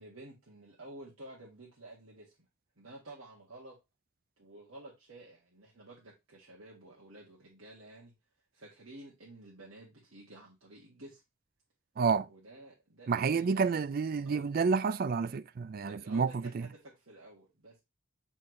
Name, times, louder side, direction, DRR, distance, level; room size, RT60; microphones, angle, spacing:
voice 1, 0.0-2.3 2.8-3.8 4.4-8.1 8.5-11.2 12.3-13.8 14.2-14.4 15.6-17.8, right 2 dB, 70° right, 1.9 m, -52 dB
voice 2, 12.0-12.3 13.1-16.7, right 5 dB, 45° right, 0.3 m, -29 dB
7.2 x 4.5 x 3.1 m
head